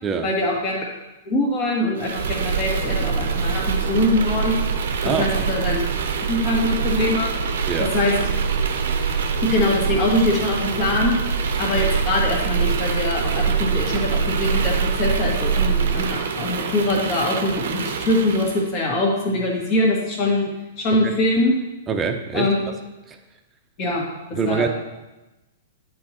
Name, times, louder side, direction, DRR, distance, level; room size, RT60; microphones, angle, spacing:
voice 1, 0.2-0.8 1.3-4.6 5.2-5.8 6.3-7.4 7.8-8.2 9.4-11.1 11.6-20.5 20.8-21.5 22.3-22.6 23.8-24.1 24.4-24.7, left 1 dB, 35° left, -2 dB, 2.0 m, -23 dB
sound 1, 2.0-18.7, right 5 dB, 65° right, 0.8 m, -24 dB
voice 2, 21.9-22.5 23.1-23.2 24.3-24.7, right 5 dB, 20° right, 5 dB, 0.8 m, -24 dB
10.5 x 4.5 x 3.1 m, 1.0 s
figure-of-eight pair, 110°, 0 cm